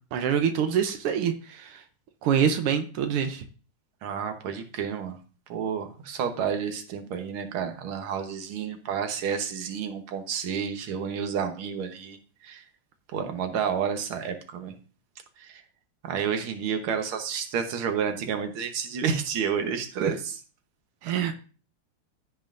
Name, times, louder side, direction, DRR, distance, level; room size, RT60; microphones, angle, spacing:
voice 1, 0.1-1.8 2.2-3.4 20.0-20.1 21.0-21.3, right 8 dB, 90° right, 7 dB, 1.8 m, -25 dB
voice 2, 4.0-5.2 5.5-12.2 12.4-12.6 13.1-14.7 15.4-15.6 16.0-20.4 21.1-21.3, right 7 dB, 70° right, 6 dB, 1.9 m, -30 dB
16.0 x 5.5 x 2.5 m, 0.37 s
omnidirectional pair, 2.4 m